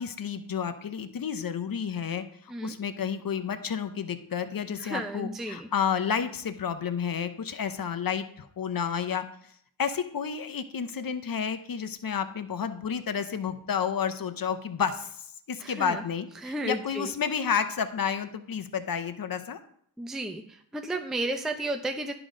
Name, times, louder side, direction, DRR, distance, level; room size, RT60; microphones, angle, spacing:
voice 1, 0.0-9.2 9.8-19.6, left 7 dB, 50° left, 9 dB, 0.8 m, -31 dB
voice 2, 4.8-5.7 15.6-16.0 16.4-17.1 20.0-20.4 20.7-22.1, right 1 dB, ahead, 5 dB, 0.5 m, -32 dB
11.0 x 3.9 x 5.0 m, 0.65 s
wide cardioid pair, 85°, 43 cm